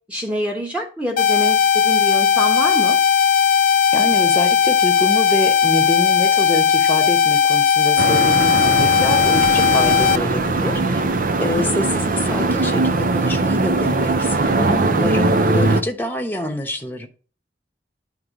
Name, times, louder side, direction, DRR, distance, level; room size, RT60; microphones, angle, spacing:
voice 1, 0.1-3.0, equal, 5° right, 1.2 m, -26 dB
sound 1, 1.2-10.2, left 7 dB, 50° left, 0.4 m, -16 dB
voice 2, 3.9-11.0 11.4-17.1, left 1 dB, 10° left, 1.0 m, -26 dB
sound 2, 8.0-15.8, right 3 dB, 50° right, 0.6 m, -20 dB
9.5 x 3.6 x 5.0 m
head